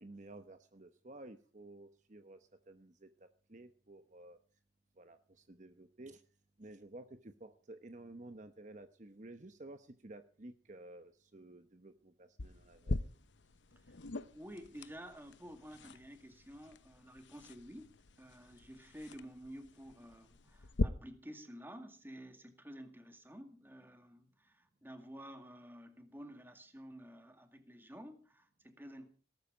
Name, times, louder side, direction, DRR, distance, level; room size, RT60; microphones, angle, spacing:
voice 1, 0.0-4.4 5.0-6.2 6.6-13.1, right 2 dB, 40° right, 1.0 m, -53 dB
sound 1, 12.4-20.8, left 2 dB, 85° left, 0.8 m, -42 dB
voice 2, 14.3-29.1, equal, 10° right, 2.1 m, -52 dB
18.5 x 12.5 x 5.1 m
head